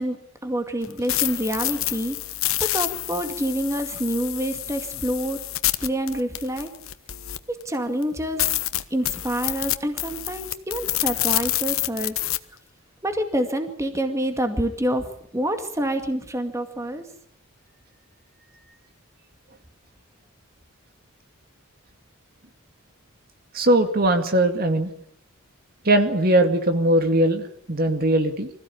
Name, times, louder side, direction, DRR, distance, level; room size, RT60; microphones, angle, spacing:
voice 1, 0.0-2.2 2.6-5.4 5.8-6.7 7.5-8.5 8.9-12.2 13.0-15.1 15.3-17.1, right 1 dB, 15° right, 6 dB, 2.2 m, -27 dB
sound 1, 0.8-7.6 8.0-8.1 8.4-12.4, left 15 dB, 75° left, 1.2 m, -27 dB
voice 2, 23.5-24.9 25.8-28.5, right 1 dB, 45° right, 6 dB, 2.3 m, -20 dB
25.0 x 15.5 x 8.6 m, 0.71 s
head